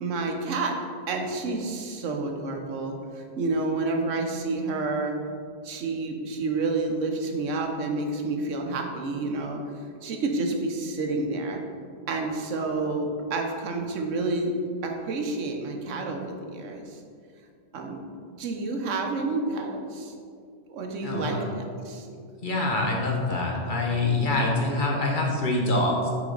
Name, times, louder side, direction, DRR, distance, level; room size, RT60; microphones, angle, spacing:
voice 1, 0.0-0.7 1.1-5.1 5.6-9.6 10.0-11.6 12.1-14.5 14.8-17.0 17.7-18.0 18.4-20.1 20.7-22.1, right 3 dB, 85° right, 3 dB, 1.1 m, -29 dB
voice 2, 21.0-21.5 22.4-26.1, left 2 dB, 45° left, 0 dB, 1.0 m, -25 dB
6.3 x 5.1 x 3.8 m, 2.2 s
omnidirectional pair, 1.2 m